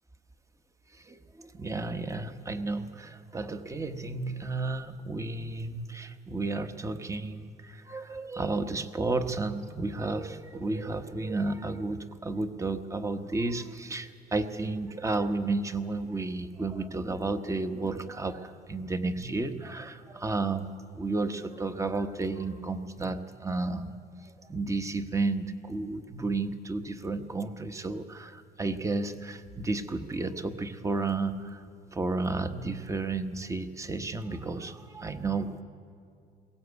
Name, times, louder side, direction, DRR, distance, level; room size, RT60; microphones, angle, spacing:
voice 1, 0.9-20.7 20.9-31.6 31.9-35.6, right 3 dB, 20° right, 9 dB, 1.1 m, -32 dB
21.5 x 17.5 x 8.2 m, 2.4 s
cardioid pair, 110°, 17 cm